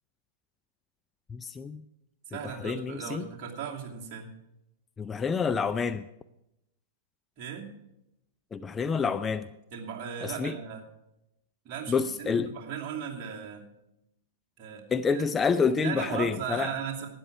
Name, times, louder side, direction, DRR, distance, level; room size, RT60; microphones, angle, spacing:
voice 1, 1.3-1.8 2.4-3.3 5.0-6.0 8.5-9.5 10.2-10.6 11.9-12.5 14.9-16.7, left 5 dB, 15° left, 11 dB, 0.4 m, -28 dB
voice 2, 2.3-4.3 7.4-7.7 9.7-10.8 11.6-13.7 14.6-14.9 15.1-15.3 15.7-17.1, right 7 dB, 35° right, -1 dB, 2.6 m, -37 dB
12.5 x 9.6 x 6.0 m, 0.86 s
figure-of-eight pair, 100°, 0 cm